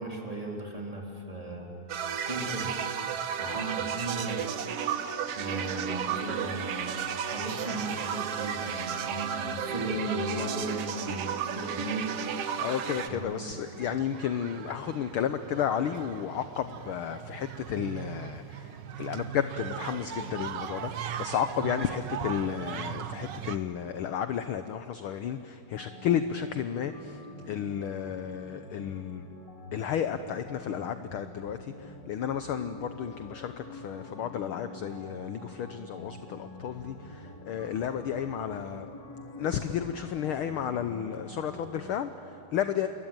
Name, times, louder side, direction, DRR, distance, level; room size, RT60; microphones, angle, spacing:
voice 1, 0.0-1.7 2.2-2.8 3.4-5.1 5.4-12.1 13.1-13.4, right 2 dB, 10° right, -1 dB, 3.7 m, -36 dB
sound 1, 1.9-13.1, right 8 dB, 60° right, 2.0 m, -33 dB
voice 2, 3.4-3.8 12.6-29.3 29.7-38.9 39.4-42.9, left 9 dB, 70° left, 10 dB, 1.3 m, -32 dB
sound 2, 12.8-23.6, right 9 dB, 75° right, 1.0 m, -39 dB
sound 3, 25.7-41.9, left 2 dB, 40° left, 2.5 m, -46 dB
28.5 x 22.5 x 9.1 m, 2.7 s
omnidirectional pair, 3.3 m